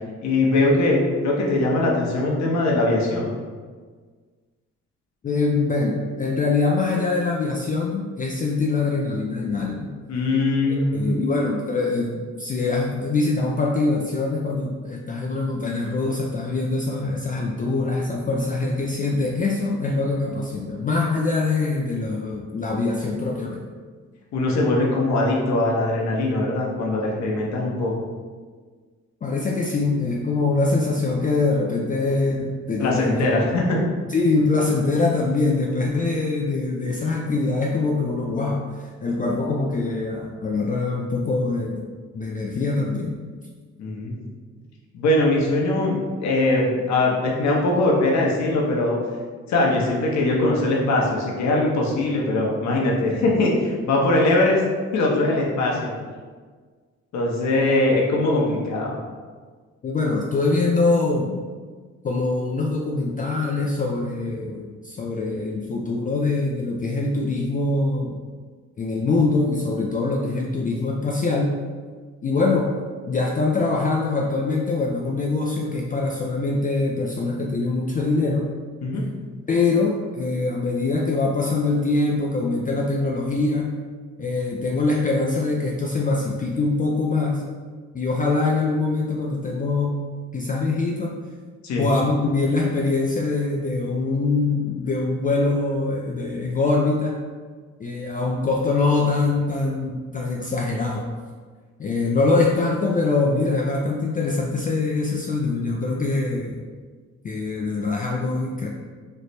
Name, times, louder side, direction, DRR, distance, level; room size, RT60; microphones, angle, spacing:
voice 1, 0.2-3.3 10.1-11.4 24.3-27.9 32.8-33.8 43.8-44.1 44.9-49.0 49.5-54.6 54.9-55.9 57.1-59.0 78.8-79.1 91.6-91.8, left 2 dB, 65° left, -2 dB, 0.8 m, -21 dB
voice 2, 5.2-9.9 10.7-23.6 29.2-33.3 34.1-41.8 42.1-43.2 55.7-55.9 59.8-61.4 62.0-68.2 68.8-71.5 72.2-72.7 73.1-78.5 79.5-83.7 84.2-87.4 87.9-90.0 90.3-91.1 91.8-97.2 97.8-101.0 101.8-106.6 107.2-108.7, left 3 dB, 30° left, -1 dB, 0.3 m, -23 dB
3.2 x 2.0 x 4.1 m, 1.5 s
cardioid pair, 90°, 30 cm